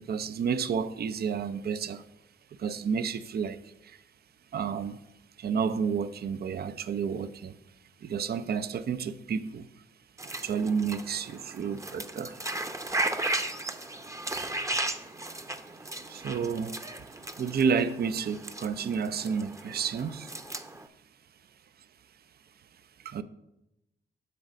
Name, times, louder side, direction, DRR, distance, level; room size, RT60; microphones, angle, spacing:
voice 1, 0.0-2.0 2.6-3.6 4.5-5.0 5.4-7.5 8.0-9.6 10.4-12.3 16.1-16.7 17.4-20.3 23.1-23.2, right 6 dB, 50° right, 0.5 m, -30 dB
sound 1, 10.2-20.9, right 2 dB, 15° right, 0.7 m, -36 dB
7.7 x 3.9 x 6.3 m
supercardioid pair, 40°, 20 cm